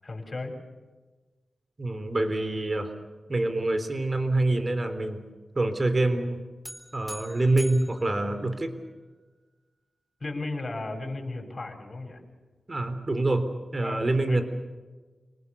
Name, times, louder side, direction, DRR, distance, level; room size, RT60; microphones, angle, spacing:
voice 1, 0.0-0.5 10.2-12.2 13.8-14.4, left 2 dB, 40° left, 2 dB, 7.6 m, -35 dB
voice 2, 1.8-2.9 3.3-5.2 5.6-6.4 6.9-8.8 12.7-13.5 13.7-14.4, right 2 dB, 35° right, 9 dB, 3.6 m, -26 dB
sound 1, 6.6-9.1, equal, ahead, 3.9 m, -45 dB
29.5 x 20.0 x 6.9 m, 1.3 s
cardioid pair, 65°, 0 cm